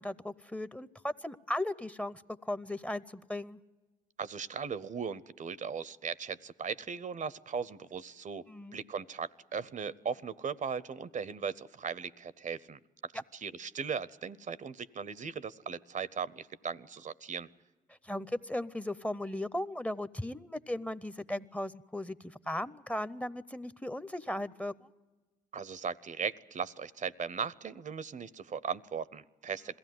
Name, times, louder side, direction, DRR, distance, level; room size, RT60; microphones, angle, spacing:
voice 1, 0.0-3.6 8.5-8.8 18.0-24.9, left 1 dB, 10° left, 15 dB, 0.7 m, -37 dB
voice 2, 4.2-8.4 8.7-17.5 25.5-29.8, right 6 dB, 55° right, 18 dB, 0.7 m, -38 dB
21.5 x 15.5 x 9.3 m, 1.2 s
supercardioid pair, 50°, 16 cm